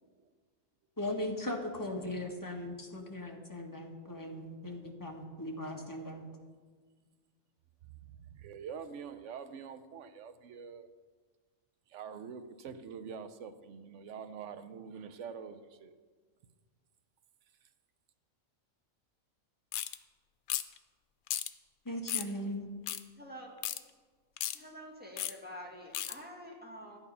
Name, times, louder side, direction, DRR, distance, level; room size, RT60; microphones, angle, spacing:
voice 1, 1.0-6.3 21.8-22.7, left 1 dB, 15° left, 1 dB, 1.3 m, -38 dB
voice 2, 7.8-10.9 11.9-15.9 17.6-17.7, right 6 dB, 65° right, 10 dB, 1.0 m, -45 dB
sound 1, 19.7-20.0 20.5-20.8 21.3-21.5 22.1-22.3 22.9-23.0 23.6-23.8 24.4-24.6 25.2-25.3 25.9-26.1, left 12 dB, 85° left, 1.0 m, -34 dB
voice 3, 23.2-23.5 24.5-27.0, equal, 5° right, -2 dB, 2.0 m, -47 dB
12.0 x 9.0 x 5.5 m, 1.5 s
omnidirectional pair, 1.4 m